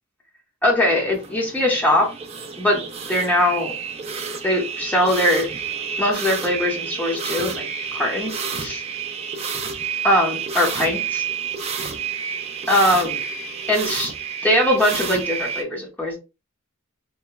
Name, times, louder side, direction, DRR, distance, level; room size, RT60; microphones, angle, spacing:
voice 1, 0.6-2.1 2.6-2.8 3.1-3.7 4.4-5.5 6.0-8.8 10.0-11.2 12.7-13.2 13.7-14.1 14.4-16.2, left 1 dB, 10° left, -1 dB, 0.9 m, -21 dB
sound 1, 0.8-15.6, right 6 dB, 30° right, 0.4 m, -30 dB
3.0 x 2.1 x 2.2 m, 0.29 s
head